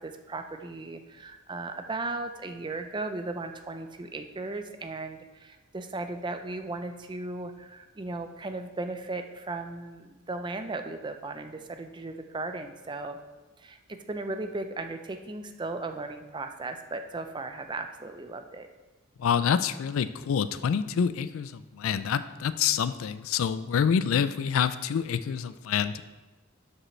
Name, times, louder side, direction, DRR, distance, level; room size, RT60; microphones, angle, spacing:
voice 1, 0.0-13.2 13.6-18.7, right 2 dB, 20° right, 6 dB, 0.5 m, -36 dB
voice 2, 19.2-26.0, left 7 dB, 65° left, 13 dB, 0.3 m, -27 dB
12.0 x 5.1 x 3.2 m, 1.2 s
head